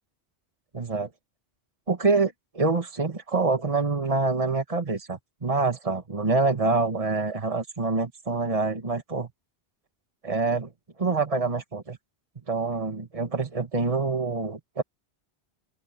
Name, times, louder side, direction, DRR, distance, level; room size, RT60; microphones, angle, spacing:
voice 1, 0.7-1.1 1.9-9.3 10.2-10.7 11.0-12.0 12.5-14.8, right 3 dB, 30° right, 1.9 m, -26 dB
open air
omnidirectional pair, 1.1 m